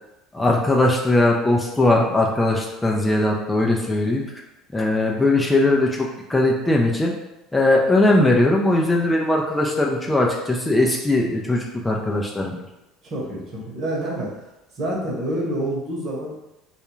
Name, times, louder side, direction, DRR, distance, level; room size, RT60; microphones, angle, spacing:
voice 1, 0.3-4.2 4.7-7.2 7.5-12.6, left 2 dB, 15° left, -1 dB, 0.4 m, -19 dB
voice 2, 13.0-14.3 14.8-16.3, right 1 dB, 50° right, -3 dB, 1.0 m, -27 dB
2.3 x 2.2 x 3.0 m, 0.94 s
hypercardioid pair, 70°, 0 cm